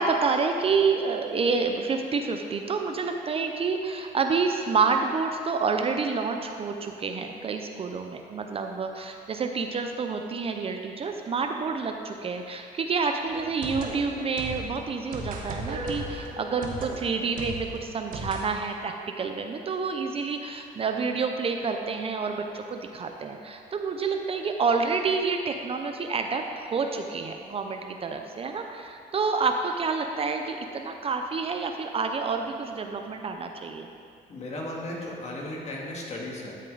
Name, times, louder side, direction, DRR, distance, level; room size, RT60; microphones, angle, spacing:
voice 1, 0.0-33.9, right 4 dB, 35° right, 4 dB, 0.6 m, -28 dB
sound 1, 13.3-18.5, right 2 dB, 55° right, 1.4 m, -36 dB
voice 2, 34.3-36.5, left 1 dB, 40° left, -2 dB, 1.9 m, -35 dB
13.0 x 6.6 x 3.9 m, 2.4 s
cardioid pair, 110°, 17 cm